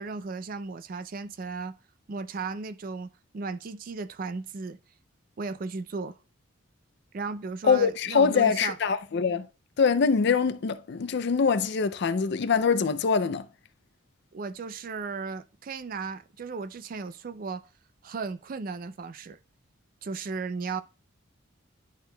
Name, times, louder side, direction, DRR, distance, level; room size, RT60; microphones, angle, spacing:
voice 1, 0.0-1.8 2.1-4.8 5.4-6.2 7.1-8.8 14.3-17.7 18.0-19.4 20.0-20.8, right 4 dB, 45° right, 0.4 m, -35 dB
voice 2, 7.6-9.5 9.8-13.5, left 5 dB, 55° left, 0.4 m, -24 dB
10.5 x 4.5 x 2.2 m
head